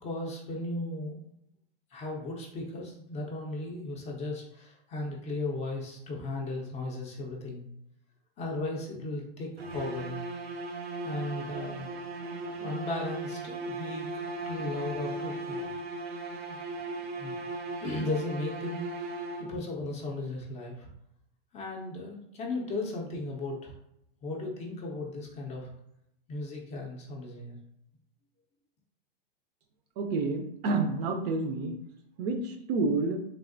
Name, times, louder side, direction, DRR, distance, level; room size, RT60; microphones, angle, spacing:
voice 1, 0.0-1.2 1.9-7.6 8.4-10.2 11.0-11.9 12.6-15.6 16.5-16.6 17.0-17.3 17.8-19.1 19.4-20.9 21.5-23.7 24.2-25.7 26.3-27.6, left 2 dB, 20° left, 0 dB, 0.5 m, -36 dB
sound 1, 9.6-19.8, right 2 dB, 90° right, 0.6 m, -37 dB
voice 2, 30.0-31.7 32.2-33.2, right 3 dB, 45° right, 5 dB, 0.5 m, -29 dB
3.3 x 2.6 x 2.5 m, 0.78 s
hypercardioid pair, 130°, 30 cm